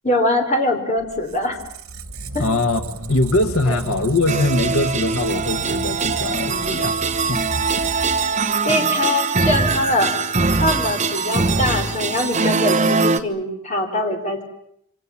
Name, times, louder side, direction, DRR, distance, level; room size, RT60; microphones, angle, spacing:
voice 1, 0.0-1.6 2.3-2.5 3.7-3.8 8.6-10.1 10.6-14.4, left 1 dB, 30° left, 3 dB, 4.5 m, -22 dB
Squeak, 1.0-8.7, right 2 dB, 80° right, 2.4 m, -33 dB
voice 2, 2.4-2.8 3.1-7.0 7.3-7.4 8.7-9.0, left 2 dB, 80° left, 8 dB, 1.7 m, -22 dB
sound 1, 4.3-13.2, right 4 dB, 30° right, 1.3 m, -22 dB
27.5 x 25.5 x 7.4 m, 0.74 s
head